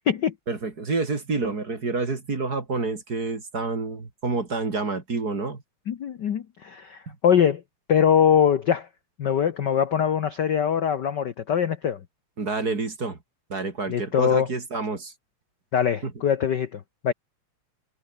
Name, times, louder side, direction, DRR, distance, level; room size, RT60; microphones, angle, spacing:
voice 1, 0.5-5.6 12.4-13.2 13.5-15.1 16.0-16.1, right 3 dB, 30° right, 3.2 m, -28 dB
voice 2, 5.9-7.6 7.9-8.9 9.2-12.0 13.9-14.5 15.7-17.1, left 8 dB, 60° left, 1.1 m, -22 dB
omnidirectional pair, 3.5 m